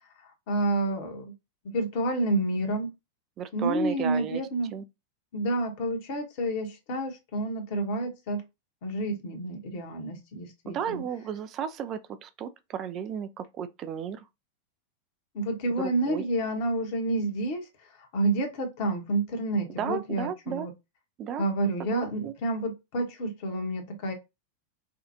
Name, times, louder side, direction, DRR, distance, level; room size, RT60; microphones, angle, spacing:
voice 1, 0.5-1.3 1.7-2.9 3.5-4.7 5.3-8.4 8.8-11.0 15.3-17.7 18.1-20.7 21.4-24.1, right 1 dB, 50° left, 1.3 m, -29 dB
voice 2, 3.4-4.4 4.7-4.8 10.7-14.2 15.8-16.2 19.8-20.7 21.2-21.4 21.8-22.3, right 8 dB, 35° right, 0.5 m, -34 dB
5.0 x 2.5 x 2.8 m
figure-of-eight pair, 90°, 0 cm